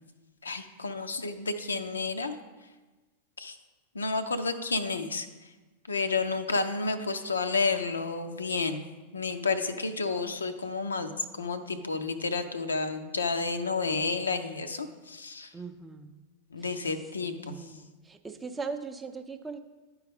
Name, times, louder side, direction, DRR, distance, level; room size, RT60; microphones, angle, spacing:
voice 1, 0.4-2.4 3.4-3.6 3.9-5.3 5.9-8.8 9.1-15.5 16.5-17.6, left 4 dB, 75° left, 8 dB, 0.5 m, -31 dB
voice 2, 15.5-16.2 16.6-16.8 17.4-19.6, right 4 dB, 15° right, 7 dB, 0.5 m, -39 dB
11.0 x 4.7 x 3.4 m, 1.2 s
figure-of-eight pair, 90°, 0 cm